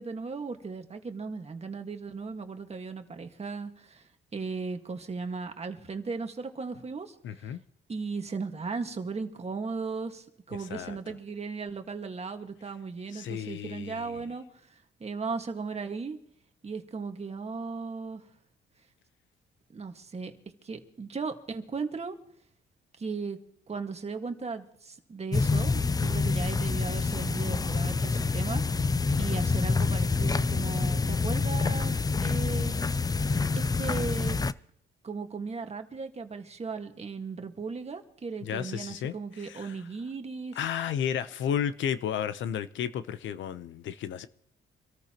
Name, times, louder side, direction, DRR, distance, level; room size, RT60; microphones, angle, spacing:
voice 1, 0.0-7.1 7.4-7.5 7.9-16.2 16.6-18.2 19.7-20.3 20.6-22.2 23.0-23.4 23.7-32.8 33.7-34.4 35.0-40.6, right 4 dB, 30° right, 1.7 m, -37 dB
voice 2, 7.2-7.6 10.6-11.0 13.1-14.2 26.0-26.3 38.4-39.7 40.5-44.3, left 9 dB, 70° left, 0.8 m, -33 dB
sound 1, 25.3-34.5, left 4 dB, 20° left, 0.4 m, -27 dB
26.0 x 13.5 x 3.0 m
cardioid pair, 90°, 20 cm